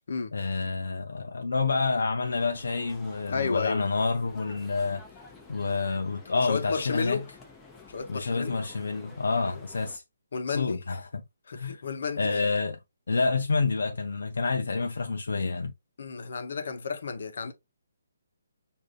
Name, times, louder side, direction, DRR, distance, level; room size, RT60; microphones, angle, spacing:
voice 1, 0.3-5.0 5.5-7.2 8.1-10.0 10.5-11.1 11.5-11.8 12.2-12.8 13.1-15.7, left 4 dB, 80° left, 0.5 m, -28 dB
sound 1, 2.2-10.0, left 4 dB, 10° left, 0.7 m, -50 dB
voice 2, 3.3-3.9 6.3-7.2 7.9-8.6 9.4-9.6 10.3-10.8 11.5-12.4 16.0-17.5, left 5 dB, 65° left, 0.8 m, -32 dB
4.9 x 2.6 x 2.3 m
hypercardioid pair, 155°, 0 cm